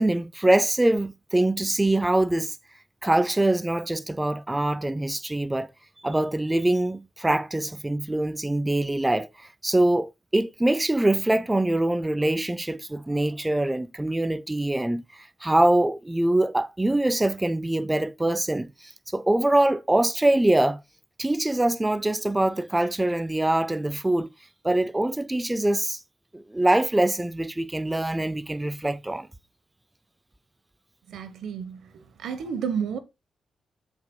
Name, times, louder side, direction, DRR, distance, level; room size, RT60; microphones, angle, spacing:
voice 1, 0.0-2.6 3.0-5.7 6.0-20.8 21.2-24.3 24.6-26.0 26.3-29.3, right 1 dB, 15° right, 0.5 m, -24 dB
voice 2, 31.1-31.8 32.2-33.0, right 7 dB, 85° right, 1.3 m, -30 dB
14.0 x 5.2 x 2.3 m
cardioid pair, 75°, 0 cm